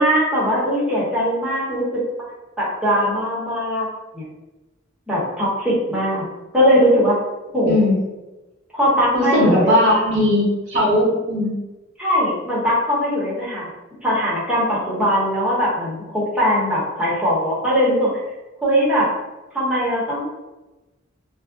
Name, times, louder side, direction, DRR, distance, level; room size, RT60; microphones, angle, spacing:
voice 1, 0.0-2.0 2.6-3.9 4.1-4.3 5.1-6.2 6.5-7.2 7.5-7.9 8.7-9.7 12.0-13.7 14.0-18.1 18.6-19.1 19.5-20.2, equal, 5° right, -8 dB, 0.9 m, -20 dB
voice 2, 9.1-11.5, left 1 dB, 50° right, -7 dB, 0.9 m, -18 dB
2.4 x 2.0 x 3.6 m, 1.1 s
head